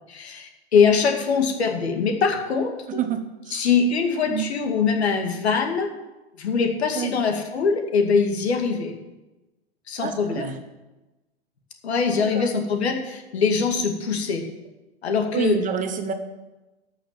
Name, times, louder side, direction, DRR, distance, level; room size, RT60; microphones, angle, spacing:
voice 1, 0.1-3.0 3.5-5.9 6.4-9.0 9.9-10.5 11.8-14.4 15.0-15.6, left 5 dB, 75° left, 4 dB, 2.4 m, -23 dB
voice 2, 2.9-3.7 4.3-4.5 6.9-7.1 10.0-10.6 12.3-12.5 15.3-16.1, right 8 dB, 25° right, 7 dB, 1.1 m, -28 dB
12.5 x 6.4 x 7.3 m, 1.1 s
hypercardioid pair, 115°, 32 cm